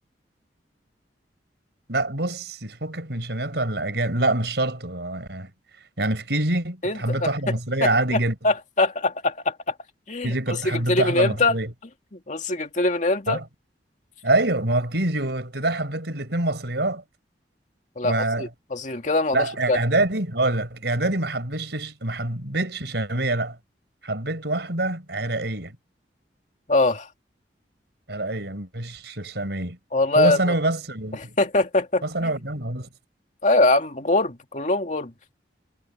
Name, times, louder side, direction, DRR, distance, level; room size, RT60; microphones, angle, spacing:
voice 1, 1.9-5.5 6.0-8.3 10.2-11.7 13.3-13.4 14.2-17.0 18.0-18.5 19.3-23.6 24.0-25.8 28.1-29.8 30.1-31.3 32.0-32.9, right 2 dB, 75° right, 4.7 m, -25 dB
voice 2, 6.8-7.3 7.8-8.2 8.4-9.7 10.1-11.6 12.3-13.4 18.0-19.8 26.7-27.1 29.9-30.5 31.1-32.3 33.4-35.1, left 2 dB, 45° left, 2.2 m, -23 dB
head